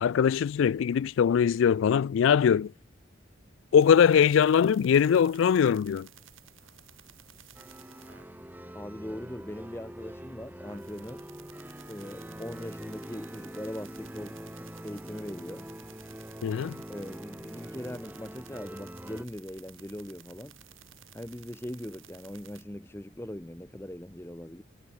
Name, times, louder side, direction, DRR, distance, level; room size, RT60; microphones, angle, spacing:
voice 1, 0.0-2.7 3.7-6.1 16.4-16.8, left 7 dB, 70° left, 0.3 m, -22 dB
sound 1, 3.8-8.3 10.3-10.4 10.6-22.6, right 11 dB, 80° right, 5.7 m, -55 dB
sound 2, 7.6-19.3, equal, 10° right, 1.9 m, -44 dB
voice 2, 8.7-11.3 11.9-14.4 14.8-15.7 16.9-20.6 21.1-24.6, left 1 dB, 10° left, 0.9 m, -40 dB
head